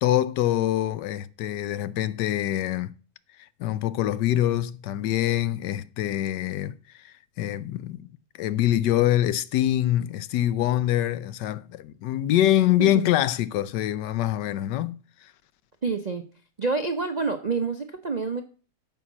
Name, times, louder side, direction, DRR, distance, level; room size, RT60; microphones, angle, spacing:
voice 1, 0.0-2.9 3.4-15.3, left 13 dB, 85° left, 1.3 m, -25 dB
voice 2, 12.8-13.1 15.8-16.2 16.6-18.4, right 4 dB, 55° right, 0.4 m, -27 dB
9.4 x 5.7 x 7.2 m
omnidirectional pair, 1.8 m